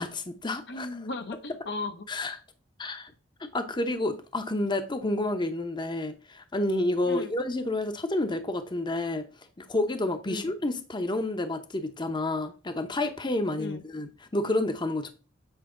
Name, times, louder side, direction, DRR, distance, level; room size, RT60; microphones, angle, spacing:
voice 1, 0.0-1.0 2.1-2.4 2.8-3.1 3.4-9.2 9.7-15.1, left 2 dB, 25° left, 0.8 m, -29 dB
voice 2, 0.7-2.1 7.0-7.3 10.3-10.5 13.6-13.8, left 2 dB, 65° left, 0.8 m, -36 dB
8.1 x 4.8 x 3.7 m
head